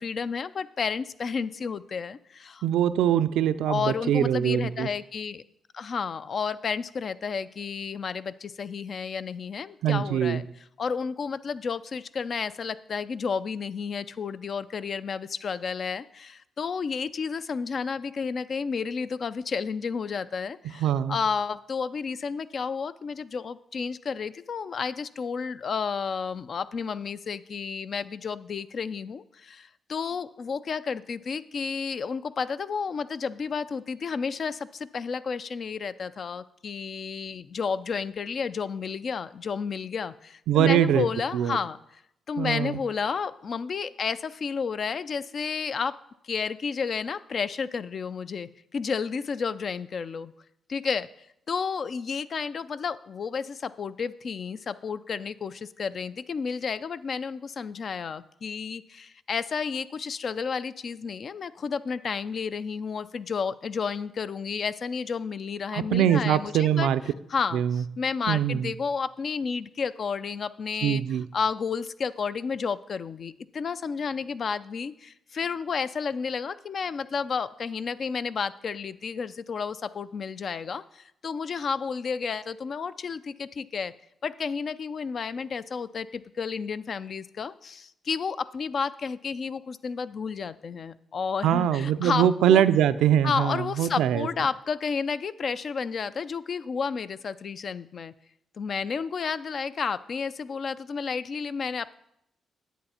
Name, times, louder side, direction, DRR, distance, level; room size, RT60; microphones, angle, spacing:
voice 1, 0.0-2.6 3.7-5.4 5.7-10.5 10.8-42.0 42.3-46.0 46.2-50.3 50.7-51.1 51.5-66.9 67.3-83.9 84.2-92.6 93.2-98.1 98.6-101.9, left 5 dB, 55° left, 14 dB, 0.4 m, -31 dB
voice 2, 2.6-4.9 9.8-10.4 20.8-21.2 40.5-41.1 41.3-41.6 42.4-42.8 65.7-67.0 67.5-67.8 68.3-68.7 70.8-71.3 91.4-94.3, right 10 dB, 90° right, 12 dB, 0.4 m, -23 dB
10.0 x 8.0 x 4.3 m, 0.77 s
cardioid pair, 75°, 0 cm